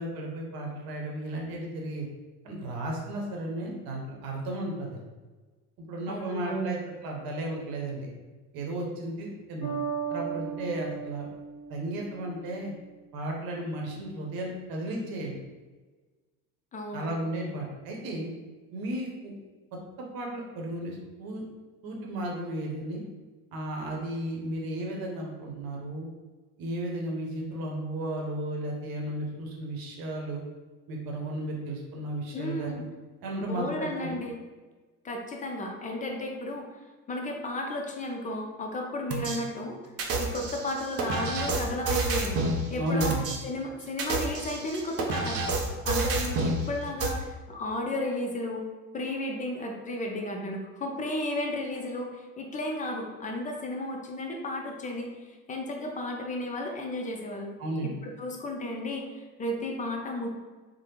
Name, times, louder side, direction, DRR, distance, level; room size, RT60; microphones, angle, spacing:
voice 1, 0.0-2.1 2.4-5.0 5.9-8.1 8.5-9.7 10.1-11.3 11.7-12.7 13.1-15.4 16.9-18.3 18.7-19.3 20.0-21.4 21.8-23.0 23.5-26.1 26.6-30.4 30.9-32.8 33.2-34.2 42.8-43.1 57.6-57.9, right 1 dB, 50° right, -1 dB, 0.9 m, -34 dB
voice 2, 6.1-6.7 16.7-17.1 32.3-32.8 33.4-34.4 35.0-36.7 37.1-39.8 40.2-43.2 43.4-45.4 45.8-48.7 48.9-55.1 55.5-57.5 57.8-60.3, left 1 dB, 20° left, 1 dB, 0.5 m, -33 dB
Bass guitar, 9.6-13.1, right 7 dB, 45° left, 1.2 m, -37 dB
sound 1, 39.1-39.4 40.0-42.6 43.0-43.4 43.9-46.6 47.0-47.1, right 3 dB, 35° right, 0.5 m, -29 dB
3.3 x 2.1 x 2.9 m, 1.3 s
hypercardioid pair, 70°, 45 cm